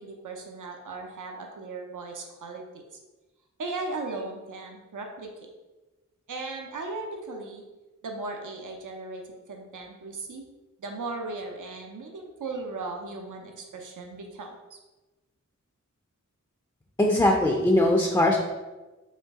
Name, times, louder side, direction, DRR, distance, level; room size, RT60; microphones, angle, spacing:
voice 1, 0.0-2.8 3.6-5.5 6.3-7.6 8.0-9.2 9.5-10.4 10.8-14.8, right 3 dB, 75° right, 2 dB, 0.7 m, -37 dB
voice 2, 17.0-18.4, left 1 dB, 10° left, 0 dB, 0.5 m, -21 dB
4.3 x 3.1 x 3.6 m, 1.1 s
wide cardioid pair, 80°, 32 cm